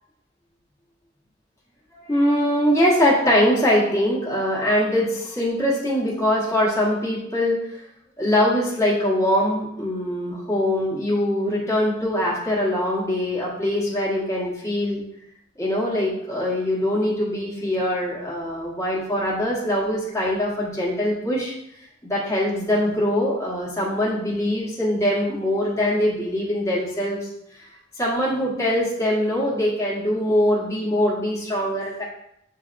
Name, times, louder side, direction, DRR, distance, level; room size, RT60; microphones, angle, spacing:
voice 1, 2.0-7.8 8.2-15.0 15.6-21.5 22.0-27.3 28.0-32.0, left 1 dB, 15° left, -7 dB, 1.2 m, -22 dB
7.7 x 2.8 x 2.5 m, 0.80 s
head